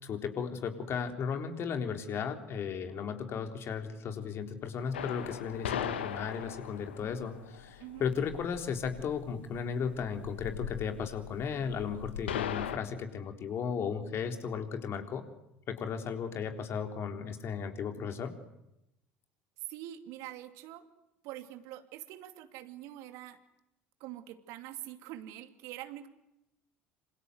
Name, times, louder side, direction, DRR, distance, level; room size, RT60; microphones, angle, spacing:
voice 1, 0.0-15.3 15.7-18.3, left 6 dB, 45° left, 6 dB, 3.8 m, -35 dB
sound 1, 4.9-12.8, left 9 dB, 80° left, 1.6 m, -39 dB
voice 2, 19.7-20.8 21.2-23.4 24.0-26.1, right 13 dB, 60° right, 8 dB, 2.7 m, -45 dB
27.0 x 27.0 x 8.0 m, 0.85 s
figure-of-eight pair, 65°, 6 cm